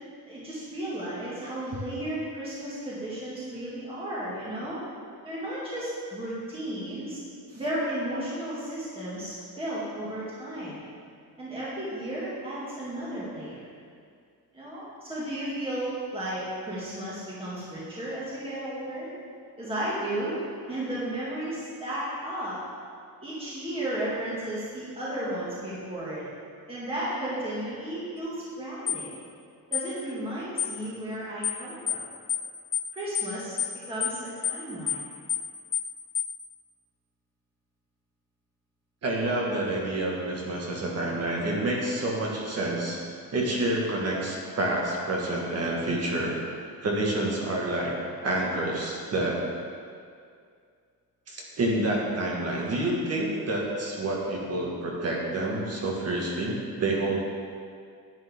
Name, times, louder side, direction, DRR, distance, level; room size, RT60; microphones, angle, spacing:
voice 1, 0.3-4.8 5.2-7.2 7.5-10.8 11.4-13.7 14.5-19.1 19.6-20.4 20.7-22.6 23.2-26.2 26.7-29.1 29.7-32.0 32.9-33.6 33.9-35.0, right 1 dB, 15° right, -9 dB, 2.1 m, -34 dB
sound 1, 28.9-29.0 29.7-29.9 30.6-30.7 31.4-31.6 31.9-32.0 32.3-32.5 32.7-32.9 33.1-33.3 33.6-33.7 34.0-34.2 34.4-34.6 34.9-35.0 35.3-35.5 35.7-35.9 36.1-36.3, left 8 dB, 30° left, 0.9 m, -28 dB
voice 2, 39.0-43.0 43.3-46.3 46.8-47.9 48.2-49.4 51.3-57.2, right 1 dB, 40° right, -2 dB, 1.8 m, -28 dB
10.5 x 9.4 x 3.7 m, 2.2 s
cardioid pair, 155°, 38 cm